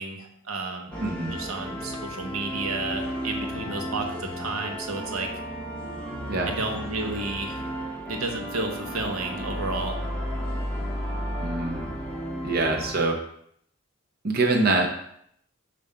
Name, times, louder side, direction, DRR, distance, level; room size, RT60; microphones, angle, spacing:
voice 1, 0.0-0.9 1.3-5.3 6.4-7.6 8.1-10.0, right 3 dB, 85° right, 3 dB, 0.9 m, -32 dB
sound 1, 0.9-13.0, equal, 5° left, 0.9 m, -33 dB
voice 2, 1.0-1.3 6.3-6.5 11.4-11.9 12.4-13.2 14.2-14.9, right 2 dB, 45° right, 1 dB, 0.7 m, -24 dB
6.9 x 2.6 x 5.6 m, 0.71 s
head